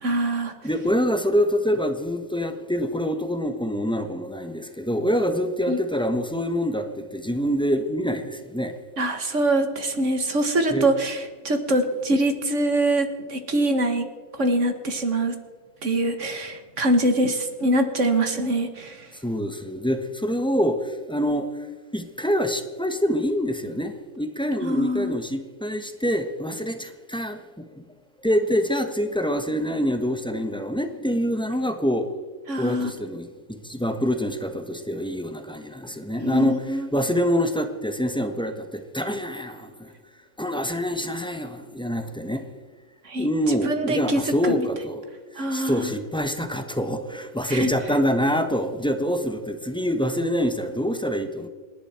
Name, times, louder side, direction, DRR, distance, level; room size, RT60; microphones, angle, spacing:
voice 1, 0.0-0.5 5.7-5.8 9.0-14.1 14.4-15.4 15.8-19.1 24.6-25.2 32.5-32.9 36.2-36.9 43.0-44.7 45.4-45.9 47.5-47.7, right 1 dB, 60° right, 6 dB, 2.0 m, -24 dB
voice 2, 0.6-8.8 10.7-10.9 19.2-21.5 21.9-27.8 28.2-32.1 32.6-39.9 40.4-42.5 43.2-45.0 45.3-51.5, equal, 5° left, 7 dB, 1.2 m, -26 dB
28.0 x 11.0 x 4.5 m, 1.5 s
omnidirectional pair, 1.5 m